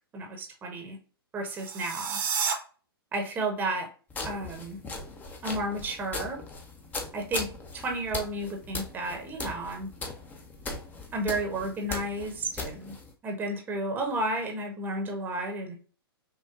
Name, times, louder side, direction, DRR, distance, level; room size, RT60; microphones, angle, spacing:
voice 1, 0.1-1.0 1.3-2.2 3.1-3.9 4.2-4.8 5.4-6.4 7.1-7.5 7.8-9.9 11.1-12.9 13.2-15.8, right 2 dB, 15° right, 2 dB, 0.9 m, -32 dB
sound 1, 1.5-2.5, right 7 dB, 55° right, 1.0 m, -30 dB
sound 2, 4.1-13.1, left 3 dB, 15° left, 0.6 m, -39 dB
5.9 x 2.2 x 2.3 m, 0.39 s
figure-of-eight pair, 115°, 13 cm